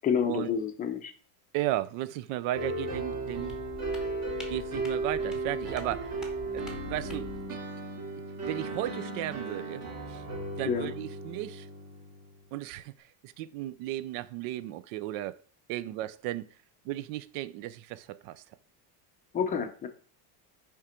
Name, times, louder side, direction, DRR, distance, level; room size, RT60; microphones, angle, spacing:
voice 1, 0.0-1.1 10.7-10.9 19.3-19.9, left 7 dB, 15° left, 0.5 m, -29 dB
voice 2, 1.5-3.6 4.5-6.2 6.5-7.6 8.5-10.2 10.6-11.7 12.5-15.4 15.7-16.5 16.8-18.4, right 14 dB, 65° right, 0.6 m, -35 dB
sound 1, 2.5-12.3, right 2 dB, 45° right, 2.4 m, -35 dB
sound 2, 3.3-7.4, left 3 dB, ahead, 0.9 m, -46 dB
10.0 x 3.7 x 4.3 m
cardioid pair, 175°, 49 cm